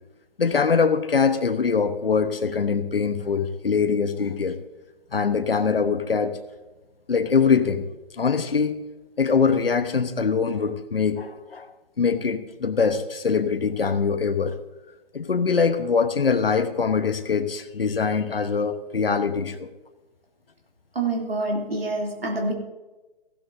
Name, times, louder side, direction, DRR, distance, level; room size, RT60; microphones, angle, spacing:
voice 1, 0.4-4.6 5.1-6.4 7.1-7.9 8.2-8.8 9.2-11.7 12.0-14.6 15.1-19.7, left 5 dB, 75° left, 8 dB, 1.2 m, -23 dB
voice 2, 20.9-22.5, right 2 dB, 80° right, 0 dB, 3.2 m, -26 dB
16.0 x 13.0 x 2.8 m, 1.1 s
figure-of-eight pair, 135°, 29 cm